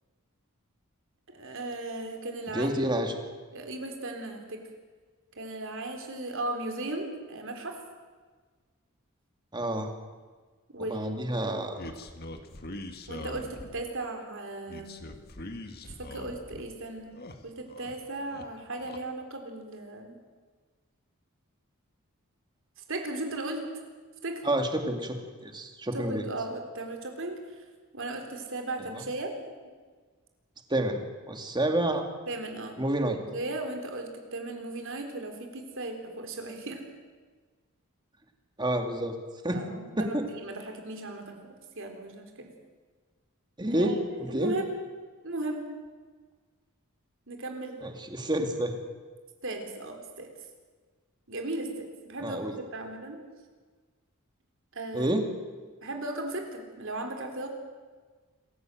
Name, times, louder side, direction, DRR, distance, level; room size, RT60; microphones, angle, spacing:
voice 1, 1.3-2.9 3.5-4.6 5.4-7.8 10.7-11.8 13.1-15.0 15.8-17.1 17.4-20.2 22.9-23.6 24.2-24.4 25.9-27.6 27.9-29.3 32.3-32.8 33.1-36.8 39.5-42.5 43.7-44.8 45.2-45.7 47.3-47.8 49.4-50.3 51.3-53.2 54.7-55.2 55.8-57.5, right 2 dB, 60° right, 4 dB, 3.9 m, -36 dB
voice 2, 2.5-3.1 9.5-9.9 10.8-11.8 24.4-26.2 28.9-29.0 30.7-31.0 31.3-32.1 32.8-33.2 38.6-39.1 39.4-39.6 40.0-40.3 43.6-44.6 47.8-48.8 52.2-52.5 54.9-55.2, right 1 dB, 20° right, 4 dB, 2.4 m, -29 dB
sound 1, 11.7-13.9 14.7-16.7 17.0-17.9 18.2-19.0, left 1 dB, 45° left, 1.8 m, -42 dB
26.5 x 15.5 x 7.8 m, 1.5 s
head